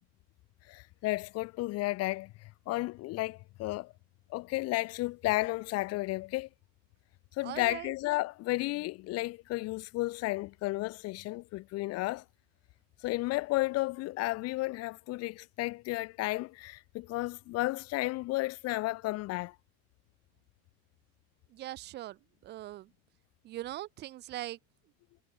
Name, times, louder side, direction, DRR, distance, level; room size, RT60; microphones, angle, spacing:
voice 1, 0.7-3.9 4.3-6.5 7.4-12.2 13.0-19.5, left 20 dB, 45° left, 1.6 m, -33 dB
voice 2, 7.4-7.9 21.5-22.9 23.4-24.6, right 15 dB, 30° right, 0.6 m, -41 dB
supercardioid pair, 145°, 34 cm